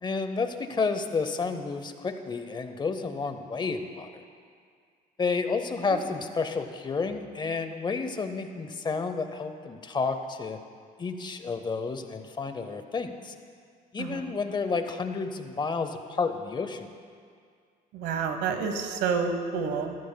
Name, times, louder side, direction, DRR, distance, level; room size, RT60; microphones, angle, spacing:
voice 1, 0.0-4.2 5.2-10.6 11.0-13.3 13.9-16.9, left 4 dB, 25° left, 8 dB, 0.7 m, -31 dB
voice 2, 17.9-20.0, right 5 dB, 90° right, 6 dB, 1.0 m, -29 dB
14.5 x 13.5 x 2.2 m, 2.1 s
cardioid pair, 110°, 17 cm